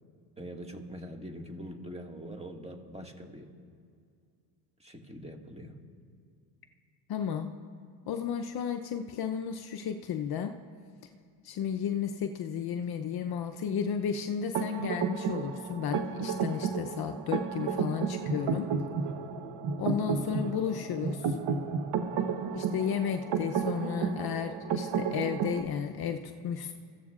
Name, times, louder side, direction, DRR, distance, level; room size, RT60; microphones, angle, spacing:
voice 1, 0.4-3.5 4.8-5.8, equal, 15° right, 2 dB, 1.9 m, -43 dB
voice 2, 7.1-7.5 8.1-10.6 11.4-18.7 19.8-21.4 22.5-26.7, left 8 dB, 50° left, 6 dB, 0.7 m, -33 dB
sound 1, 14.5-25.6, right 6 dB, 55° right, 1.3 m, -32 dB
24.5 x 15.0 x 2.5 m, 2.2 s
supercardioid pair, 85°, 49 cm